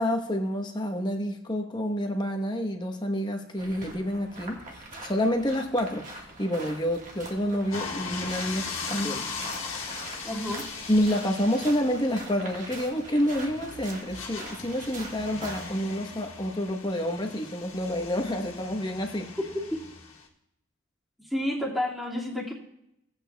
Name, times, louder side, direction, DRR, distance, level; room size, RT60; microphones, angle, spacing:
voice 1, 0.0-4.6 5.0-9.3 9.6-9.9 10.9-19.3, equal, 20° left, 4 dB, 1.0 m, -28 dB
sound 1, 3.6-15.8, right 2 dB, 35° right, 1.5 m, -43 dB
sound 2, 7.7-20.3, left 4 dB, 70° left, 1.6 m, -39 dB
voice 2, 10.2-10.7 19.4-19.5 21.3-22.5, left 1 dB, ahead, -6 dB, 2.0 m, -30 dB
17.5 x 8.2 x 2.3 m, 0.79 s
head